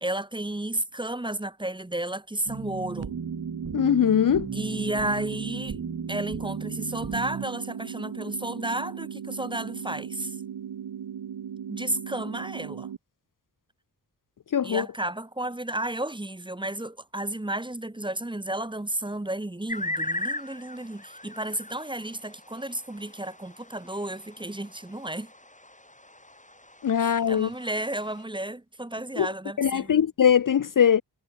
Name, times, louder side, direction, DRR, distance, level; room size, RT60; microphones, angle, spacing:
voice 1, 0.0-3.1 4.5-5.8 6.1-10.3 11.7-12.9 14.6-25.3 27.0-30.0, right 1 dB, 10° right, 1.1 m, -32 dB
sound 1, 2.5-7.5, right 5 dB, 35° right, 0.9 m, -36 dB
sound 2, 3.0-13.0, right 8 dB, 90° right, 1.2 m, -37 dB
voice 2, 3.7-4.5 14.5-14.9 26.8-27.5 29.2-29.3 29.6-31.0, left 8 dB, 50° left, 0.6 m, -21 dB
sound 3, 19.7-28.2, left 1 dB, 20° left, 7.5 m, -39 dB
wide cardioid pair, 70°, 41 cm